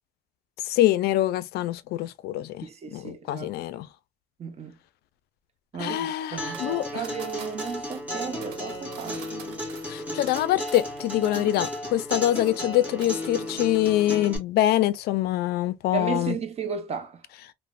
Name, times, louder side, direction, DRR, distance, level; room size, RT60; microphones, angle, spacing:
voice 1, 0.6-3.9 5.8-7.1 9.9-16.3, left 14 dB, 75° left, 0.4 m, -25 dB
voice 2, 2.6-3.5 4.4-4.7 5.7-9.3 15.9-17.2, right 6 dB, 40° right, 0.7 m, -34 dB
Acoustic guitar, 6.4-14.4, left 1 dB, 10° right, 1.3 m, -34 dB
sound 1, 6.5-12.0 12.3-12.7 13.0-13.2, right 8 dB, 85° right, 0.7 m, -46 dB
3.0 x 2.1 x 2.2 m
cardioid pair, 110°, 17 cm